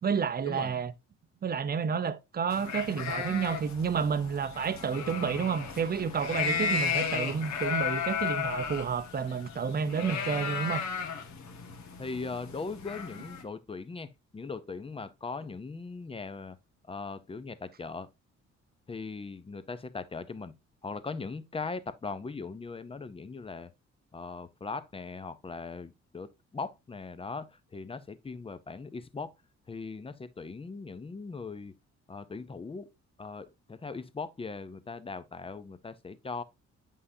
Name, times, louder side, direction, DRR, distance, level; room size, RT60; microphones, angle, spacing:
voice 1, 0.0-0.9 1.4-10.8, right 6 dB, 30° right, 0.6 m, -30 dB
sound 1, 2.5-13.4, left 6 dB, 70° left, 1.6 m, -34 dB
voice 2, 12.0-16.6 16.9-18.1 18.9-20.5 20.8-23.7 24.1-29.3 29.7-31.7 32.1-32.9 33.2-36.4, left 4 dB, 20° left, 0.6 m, -39 dB
8.2 x 5.5 x 2.7 m
cardioid pair, 115°, 29 cm